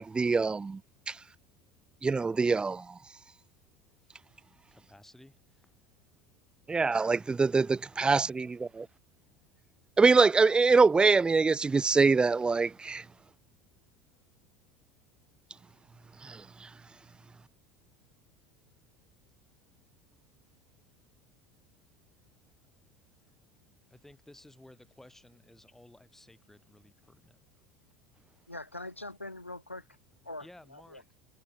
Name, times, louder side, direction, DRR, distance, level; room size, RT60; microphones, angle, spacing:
voice 1, 0.0-0.8 1.1-1.2 2.0-3.0 6.7-8.9 10.0-13.0 16.2-16.7, right 4 dB, 15° right, 0.4 m, -24 dB
voice 2, 0.9-2.2 3.0-6.8 7.6-8.3 9.1-9.8 13.3-13.4 13.9-14.0 16.5-17.7 19.7-19.8 22.4-27.4 30.4-31.1, left 1 dB, 5° left, 4.5 m, -60 dB
voice 3, 28.5-29.9 30.2-31.1, left 2 dB, 90° left, 1.2 m, -43 dB
figure-of-eight pair, 75°, 7 cm